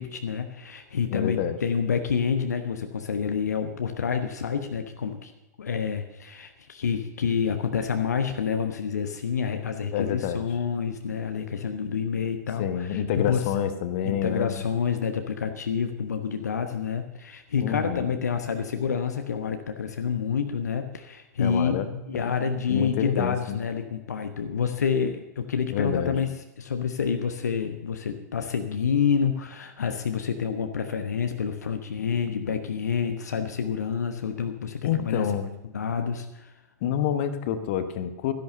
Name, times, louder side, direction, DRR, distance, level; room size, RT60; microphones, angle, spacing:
voice 1, 0.0-5.3 5.6-13.5 14.0-26.3 26.6-35.3 35.6-36.5, left 6 dB, 65° left, 7 dB, 1.1 m, -28 dB
voice 2, 1.1-1.6 9.9-10.4 12.6-14.6 17.6-18.1 21.4-22.4 22.7-23.6 25.7-26.1 34.8-35.5 36.8-38.3, left 9 dB, 45° left, 10 dB, 1.3 m, -28 dB
13.0 x 10.5 x 6.6 m, 0.97 s
figure-of-eight pair, 100°, 10 cm